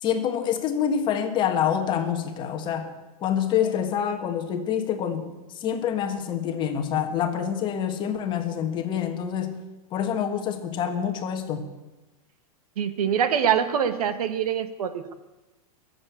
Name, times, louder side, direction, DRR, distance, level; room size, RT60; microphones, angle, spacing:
voice 1, 0.0-2.9 3.2-9.6 9.9-11.7, left 8 dB, 25° left, 6 dB, 1.5 m, -26 dB
voice 2, 12.8-15.1, right 8 dB, 85° right, 11 dB, 1.5 m, -24 dB
21.0 x 7.8 x 8.4 m, 1.1 s
supercardioid pair, 160°, 19 cm